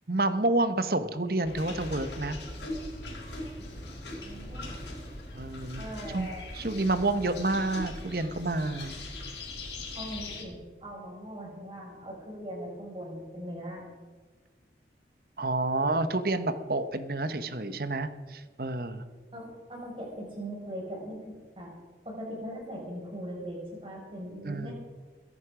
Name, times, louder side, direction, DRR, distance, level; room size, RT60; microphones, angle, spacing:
voice 1, 0.1-2.4 5.3-5.8 6.1-6.3 6.5-8.9 15.4-19.0 24.5-24.7, right 2 dB, 55° right, 11 dB, 1.1 m, -29 dB
sound 1, 1.4-10.4, left 2 dB, 75° left, 5.1 m, -40 dB
voice 2, 4.2-4.7 5.8-6.5 9.9-13.9 19.3-21.7 22.0-24.8, equal, 30° right, -2 dB, 6.2 m, -40 dB
22.5 x 11.0 x 5.0 m, 1.4 s
head